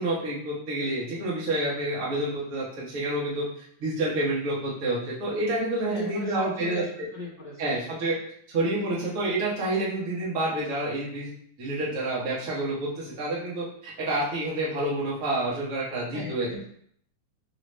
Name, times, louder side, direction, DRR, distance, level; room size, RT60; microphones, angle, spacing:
voice 1, 0.0-3.4 3.8-6.8 7.6-8.2 8.5-11.3 11.6-16.5, right 2 dB, 70° right, -6 dB, 0.7 m, -28 dB
voice 2, 5.8-7.8 16.1-16.6, left 1 dB, 10° right, -9 dB, 0.5 m, -38 dB
5.0 x 2.6 x 3.2 m, 0.66 s
omnidirectional pair, 3.5 m